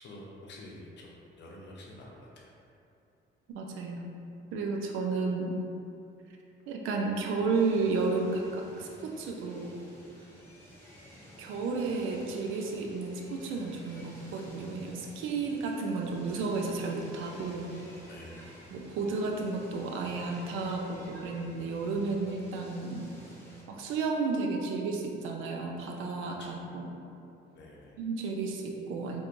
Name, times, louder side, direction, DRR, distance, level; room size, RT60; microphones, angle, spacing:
voice 1, 0.0-2.5 18.1-18.5 26.4-26.6 27.5-28.0, left 1 dB, 60° left, -3 dB, 0.7 m, -48 dB
voice 2, 3.5-4.1 4.5-5.5 6.7-9.8 11.4-17.7 18.7-23.1 23.7-26.9 28.0-29.2, right 4 dB, 85° right, 1 dB, 0.4 m, -32 dB
sound 1, 7.5-23.6, equal, 10° left, 0.9 m, -52 dB
4.4 x 2.2 x 2.5 m, 2.7 s
cardioid pair, 90°, 20 cm